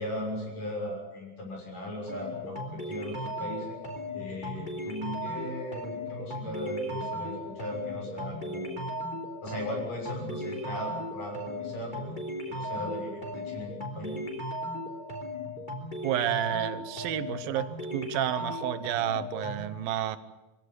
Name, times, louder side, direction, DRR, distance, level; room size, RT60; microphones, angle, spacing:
voice 1, 0.0-3.8 4.1-8.8 9.4-14.2, equal, 65° left, 1 dB, 8.4 m, -37 dB
sound 1, 2.1-19.6, left 1 dB, 15° left, 3.3 m, -37 dB
voice 2, 16.0-20.2, right 12 dB, 85° right, 11 dB, 2.8 m, -30 dB
23.5 x 17.0 x 9.7 m, 1.1 s
omnidirectional pair, 4.0 m